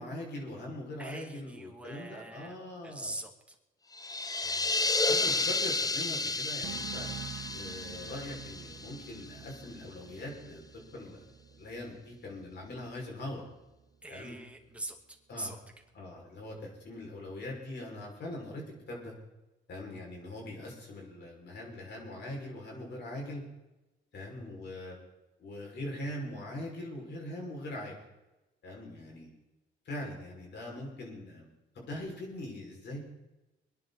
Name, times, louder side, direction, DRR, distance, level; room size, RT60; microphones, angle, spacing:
voice 1, 0.0-3.1 4.4-7.1 7.5-11.2 11.6-13.4 14.1-14.3 15.3-15.5 15.9-19.1 19.7-23.4 24.1-25.0 25.4-28.0 28.6-29.3 29.8-31.5 31.7-33.0, left 1 dB, 60° left, -1 dB, 5.7 m, -42 dB
voice 2, 1.0-2.6 2.8-3.6 9.0-9.1 14.0-15.6, right 1 dB, 5° right, 2 dB, 2.5 m, -43 dB
sound 1, 3.9-9.6, left 3 dB, 20° left, 0.6 m, -32 dB
sound 2, 6.6-14.1 14.4-14.9, right 9 dB, 70° right, 1.1 m, -48 dB
24.0 x 10.5 x 4.2 m, 1.0 s
cardioid pair, 90°, 20 cm